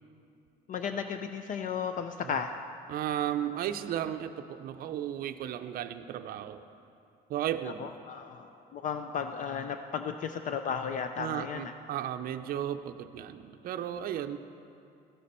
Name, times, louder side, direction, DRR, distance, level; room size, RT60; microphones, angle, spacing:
voice 1, 0.7-2.5 7.6-11.7, left 7 dB, 50° left, 7 dB, 0.5 m, -34 dB
voice 2, 2.9-6.6 7.3-7.9 11.2-14.4, right 10 dB, 60° right, 8 dB, 0.5 m, -34 dB
13.0 x 9.4 x 4.3 m, 2.6 s
cardioid pair, 110°, 17 cm